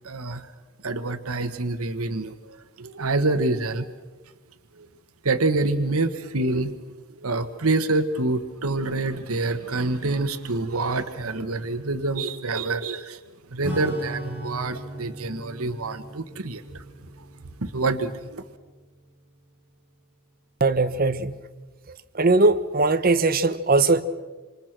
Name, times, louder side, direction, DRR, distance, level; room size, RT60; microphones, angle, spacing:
voice 1, 0.0-0.5 0.8-3.9 4.7-4.9 5.2-6.8 7.2-13.2 13.5-16.8 17.6-18.4, right 2 dB, 90° right, 1.4 m, -26 dB
Acoustic guitar / Strum, 13.6-19.6, equal, 10° right, 4.6 m, -39 dB
voice 2, 20.6-21.3 21.9-24.0, right 3 dB, 45° right, 1.0 m, -20 dB
27.0 x 27.0 x 6.1 m
head